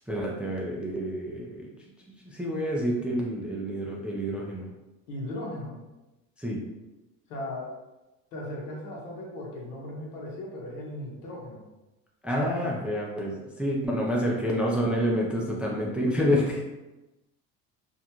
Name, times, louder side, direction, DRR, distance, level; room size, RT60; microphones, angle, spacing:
voice 1, 0.1-1.7 2.2-4.7 6.4-6.6 12.2-16.6, equal, 5° right, -3 dB, 0.4 m, -28 dB
voice 2, 5.1-5.8 7.3-7.7 8.3-11.6, left 1 dB, 80° left, -2 dB, 1.0 m, -37 dB
2.5 x 2.1 x 2.9 m, 1.0 s
supercardioid pair, 90°, 38 cm